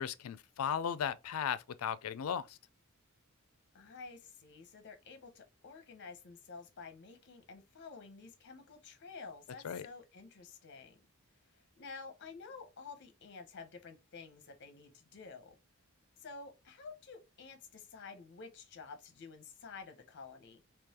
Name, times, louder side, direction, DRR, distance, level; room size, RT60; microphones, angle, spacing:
voice 1, 0.0-2.6 9.6-9.9, left 8 dB, 90° left, 0.4 m, -36 dB
voice 2, 3.7-11.0 11.5-15.6 16.2-20.6, left 4 dB, 55° left, 0.7 m, -51 dB
3.8 x 2.9 x 2.8 m
head